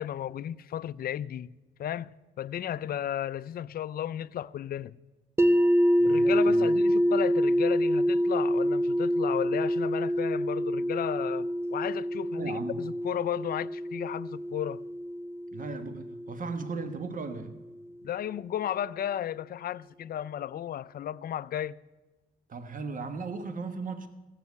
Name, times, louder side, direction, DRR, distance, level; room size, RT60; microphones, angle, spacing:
voice 1, 0.0-2.1 2.4-4.9 6.0-14.8 18.0-21.8, left 10 dB, 45° left, 0.4 m, -34 dB
sound 1, 5.4-17.3, equal, 10° right, 0.6 m, -27 dB
voice 2, 6.0-6.7 12.4-12.8 15.5-17.5 22.5-24.1, right 4 dB, 40° right, 1.3 m, -37 dB
15.0 x 7.5 x 8.1 m
cardioid pair, 100°, 21 cm